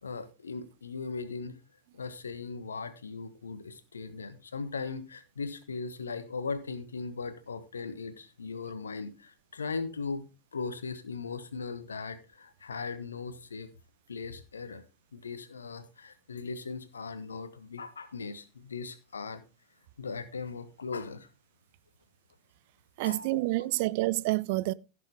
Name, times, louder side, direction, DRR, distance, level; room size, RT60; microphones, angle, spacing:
voice 1, 0.0-1.6 1.9-10.3 10.5-13.7 14.1-14.8 15.1-19.4 20.0-21.3 23.0-23.3, left 4 dB, 70° left, 1.3 m, -38 dB
voice 2, 23.0-24.7, right 20 dB, 50° right, 0.4 m, -28 dB
16.0 x 6.8 x 3.5 m
figure-of-eight pair, 90°, 0 cm